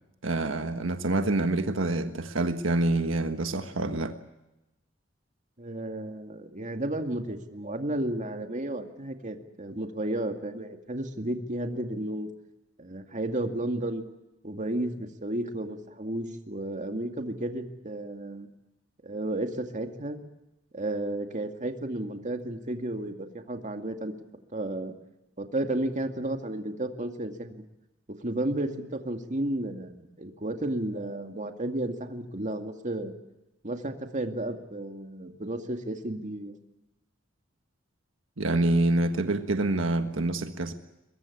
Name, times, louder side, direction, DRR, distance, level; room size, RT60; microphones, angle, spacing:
voice 1, 0.2-4.2 38.4-40.7, right 2 dB, 85° right, 7 dB, 1.5 m, -26 dB
voice 2, 5.6-12.3 12.8-14.0 14.4-18.5 19.0-20.2 20.7-24.1 24.5-24.9 25.4-27.6 28.1-33.1 33.6-36.6, right 1 dB, 40° right, 5 dB, 2.2 m, -33 dB
22.5 x 22.5 x 8.5 m, 0.95 s
head